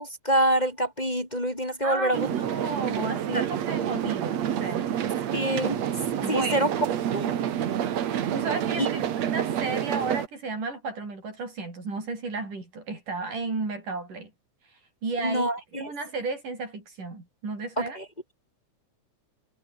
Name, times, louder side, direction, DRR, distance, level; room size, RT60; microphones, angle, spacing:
voice 1, 0.0-2.3 3.3-3.4 5.3-5.8 6.3-6.7 7.1-7.3 8.8-8.9 15.2-15.6 15.8-15.9 17.8-18.0, right 1 dB, 15° left, 3.9 m, -26 dB
voice 2, 1.8-4.9 5.2-5.3 6.2-6.7 8.0-14.3 15.0-18.0, right 3 dB, 85° right, 9.5 m, -33 dB
sound 1, 2.1-10.3, right 10 dB, 60° right, 2.7 m, -28 dB
omnidirectional pair, 3.6 m